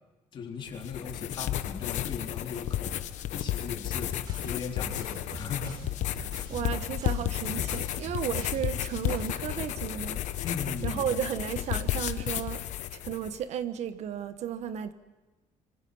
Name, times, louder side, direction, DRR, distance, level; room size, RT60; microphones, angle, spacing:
voice 1, 0.3-3.0 3.3-5.8 10.4-11.0, left 5 dB, 35° left, 3.9 m, -38 dB
sound 1, 0.7-13.4, left 12 dB, 65° left, 1.1 m, -33 dB
sound 2, 3.9-9.4, right 2 dB, 30° right, 5.5 m, -43 dB
voice 2, 6.5-10.4 10.8-12.6 12.9-14.9, right 9 dB, 55° right, 1.3 m, -34 dB
25.5 x 25.0 x 5.6 m
cardioid pair, 170°, 13 cm